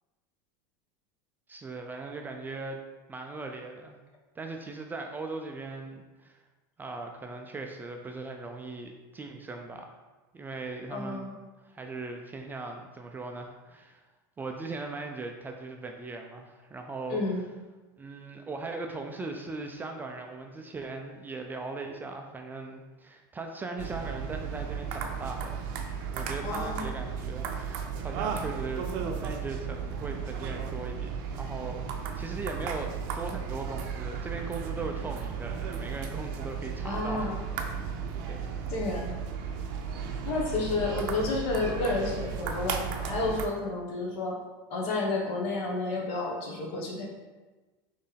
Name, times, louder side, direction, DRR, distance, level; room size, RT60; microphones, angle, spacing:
voice 1, 1.5-2.8 3.1-4.0 4.4-6.4 6.8-9.9 10.3-11.3 11.6-14.0 14.4-17.4 18.0-25.6 26.1-28.9 29.1-37.3 37.6-37.8 38.3-38.5 40.8-41.0, right 3 dB, 15° right, 3 dB, 0.3 m, -39 dB
voice 2, 10.9-11.3 17.1-17.4 26.4-26.9 36.8-37.4 38.7-39.1 40.2-44.4 44.7-47.0, left 3 dB, 55° left, -2 dB, 1.2 m, -31 dB
sound 1, 23.8-43.5, right 6 dB, 65° right, 0.5 m, -35 dB
4.3 x 3.1 x 3.3 m, 1.2 s
supercardioid pair, 125°, 12 cm